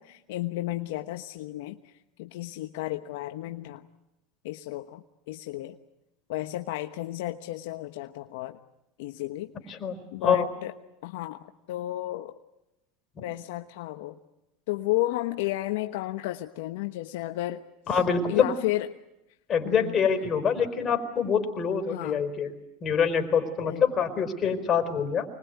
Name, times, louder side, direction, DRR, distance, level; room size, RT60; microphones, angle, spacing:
voice 1, 0.0-1.9 2.2-3.8 4.4-5.8 6.3-8.6 9.0-9.7 10.1-10.7 11.0-12.4 13.2-14.2 14.7-17.6 17.9-18.0 18.3-18.9 19.6-19.9 21.9-22.2 23.6-23.8, left 16 dB, 75° left, 7 dB, 1.1 m, -33 dB
voice 2, 9.7-10.5 13.2-13.3 17.9-18.5 19.5-22.5 22.8-25.3, left 6 dB, 35° left, 6 dB, 4.6 m, -25 dB
25.5 x 21.5 x 9.4 m, 0.92 s
supercardioid pair, 110°, 0 cm